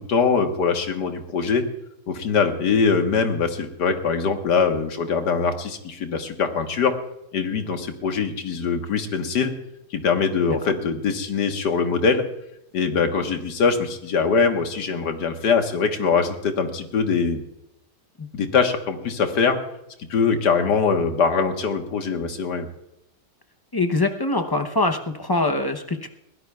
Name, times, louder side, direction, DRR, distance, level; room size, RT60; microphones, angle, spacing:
voice 1, 0.0-1.7 2.1-6.9 7.3-9.5 9.9-12.3 12.7-17.4 18.3-19.6 20.1-22.7, left 5 dB, 80° left, 5 dB, 1.9 m, -22 dB
voice 2, 23.7-26.1, left 2 dB, 35° left, 6 dB, 0.3 m, -23 dB
22.0 x 16.5 x 2.3 m, 0.84 s
omnidirectional pair, 1.8 m